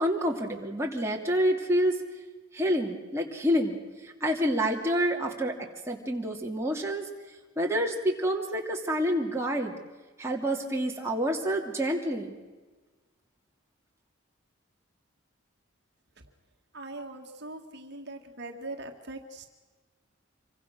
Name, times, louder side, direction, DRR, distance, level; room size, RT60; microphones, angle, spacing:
voice 1, 0.0-2.0 2.5-3.8 4.0-5.6 5.9-7.0 7.6-9.7 10.2-12.3, equal, 15° right, -1 dB, 2.7 m, -28 dB
voice 2, 16.7-19.5, right 2 dB, 55° right, 3 dB, 1.9 m, -41 dB
26.5 x 24.0 x 6.4 m, 1.3 s
head